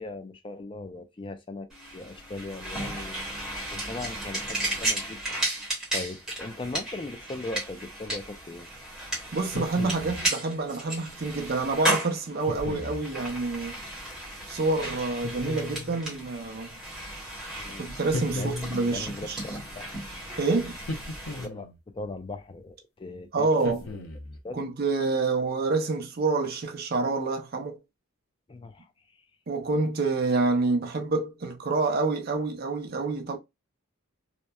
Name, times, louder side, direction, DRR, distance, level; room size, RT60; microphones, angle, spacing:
voice 1, 0.0-5.4 5.9-8.7 17.6-17.8 18.3-18.5 18.9-20.0 21.4-24.0 24.4-24.6 28.5-29.3, left 2 dB, 20° left, 0.3 m, -39 dB
sound 1, 1.7-21.4, right 1 dB, 5° right, 1.0 m, -34 dB
voice 2, 9.3-13.8 14.5-16.8 17.8-19.4 20.4-20.8 23.3-23.8 24.5-27.8 29.5-33.4, right 3 dB, 45° right, 0.6 m, -27 dB
sound 2, 9.4-10.3 12.4-13.1 15.2-16.0 18.1-19.0 20.8-21.8 23.6-24.4, left 2 dB, 80° left, 0.6 m, -35 dB
2.9 x 2.1 x 2.2 m
head